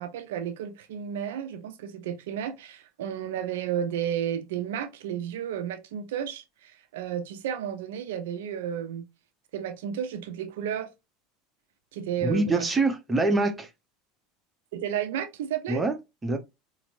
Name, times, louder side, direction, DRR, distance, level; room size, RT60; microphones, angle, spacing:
voice 1, 0.0-9.0 9.5-10.9 11.9-12.7 14.7-15.8, right 9 dB, 65° right, 0.5 m, -32 dB
voice 2, 12.2-13.7 15.7-16.0 16.2-16.4, right 2 dB, 15° right, 0.7 m, -24 dB
4.2 x 2.0 x 2.5 m
figure-of-eight pair, 70°, 0 cm